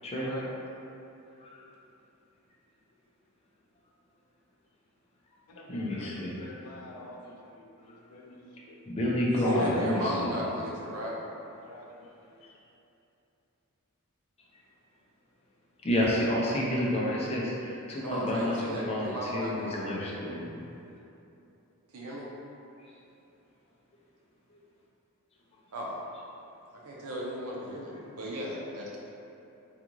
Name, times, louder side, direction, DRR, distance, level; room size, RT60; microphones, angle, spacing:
voice 1, 0.2-0.6 5.5-8.8 9.4-10.6 11.4-12.4, left 2 dB, 85° left, 0 dB, 0.4 m, -40 dB
voice 2, 5.7-6.5 8.9-10.4 15.8-20.5, left 1 dB, 30° left, -5 dB, 0.5 m, -30 dB
voice 3, 9.3-11.2 18.0-19.9 21.9-22.3 25.7-26.0 26.7-29.0, equal, 80° right, -4 dB, 0.7 m, -35 dB
3.7 x 2.4 x 3.0 m, 2.8 s
head